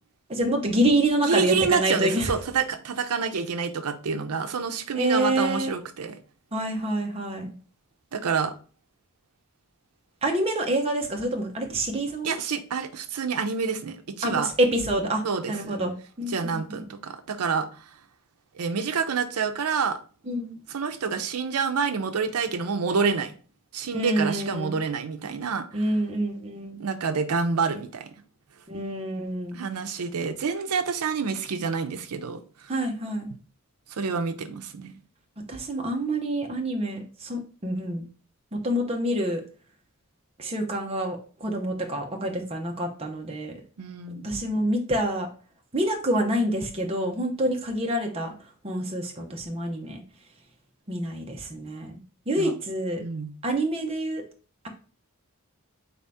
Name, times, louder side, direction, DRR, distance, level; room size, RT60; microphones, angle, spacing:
voice 1, 0.3-2.3 4.9-5.7 6.5-7.5 10.2-12.4 14.2-15.2 15.5-16.6 20.3-20.6 23.9-24.8 25.7-26.8 28.7-29.6 32.7-33.3 35.5-38.1 38.5-39.4 40.4-43.5 44.2-45.3 45.7-48.3 48.6-50.0 50.9-52.0 52.3-53.0 53.4-54.2, right 1 dB, 25° right, 0.7 m, -27 dB
voice 2, 1.2-6.2 8.1-8.5 12.2-14.5 15.2-15.8 16.3-17.7 18.5-20.0 20.7-23.3 23.7-25.9 26.8-28.1 29.5-32.7 33.9-34.9 43.8-44.4 52.4-52.5 53.0-53.4, right 5 dB, 90° right, 0.5 m, -28 dB
4.1 x 2.7 x 3.4 m
head